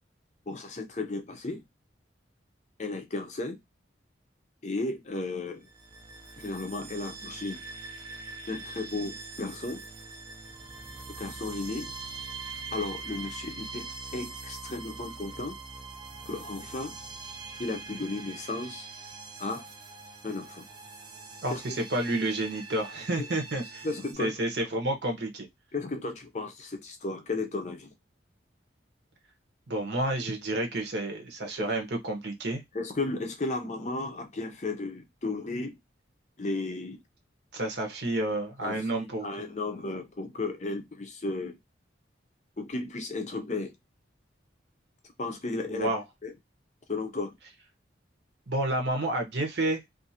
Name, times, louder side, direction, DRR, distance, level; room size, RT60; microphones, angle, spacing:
voice 1, 0.5-1.6 2.8-3.6 4.6-5.7 6.4-7.6 8.5-9.8 11.2-11.9 12.7-15.6 16.3-16.9 17.6-18.9 19.4-19.6 20.2-20.7 21.5-21.6 23.8-24.3 25.7-27.9 31.6-31.7 32.7-35.7 36.4-37.0 38.6-41.6 42.6-43.7 45.2-45.9 46.2-46.3 46.9-47.3, left 3 dB, 40° left, 0.5 m, -34 dB
sound 1, 5.6-24.1, right 4 dB, 20° right, 0.5 m, -43 dB
voice 2, 21.4-23.9 24.2-25.5 29.7-32.6 37.5-39.3 45.7-46.0 48.5-49.8, right 1 dB, 60° right, 0.9 m, -30 dB
2.5 x 2.4 x 2.8 m
head